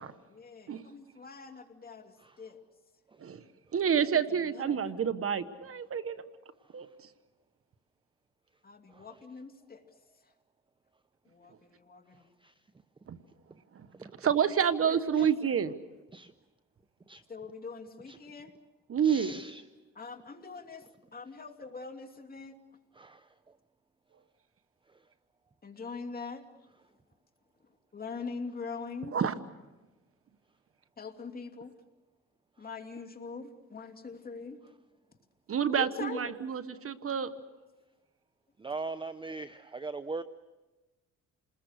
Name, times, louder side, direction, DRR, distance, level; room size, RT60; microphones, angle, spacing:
voice 1, 0.3-2.6 4.5-4.8 8.6-9.8 11.3-12.2 14.8-15.3 17.3-18.5 19.9-20.8 21.1-22.5 25.6-26.4 27.9-29.2 31.0-31.7 32.6-34.6 35.7-36.3, left 4 dB, 30° left, 5 dB, 2.7 m, -43 dB
voice 2, 3.7-6.2 6.7-6.9 13.1-13.2 13.7-13.9 14.2-15.7 18.9-19.4 29.1-29.3 35.5-37.3, right 7 dB, 50° right, 12 dB, 1.3 m, -28 dB
voice 3, 13.9-14.3 15.2-15.3 16.1-16.3 17.1-17.2 18.1-18.2 19.0-19.6 22.9-23.3 24.9-25.0 38.6-40.2, right 3 dB, 15° right, 12 dB, 0.7 m, -41 dB
29.0 x 20.5 x 6.6 m, 1.1 s
cardioid pair, 90°, 30 cm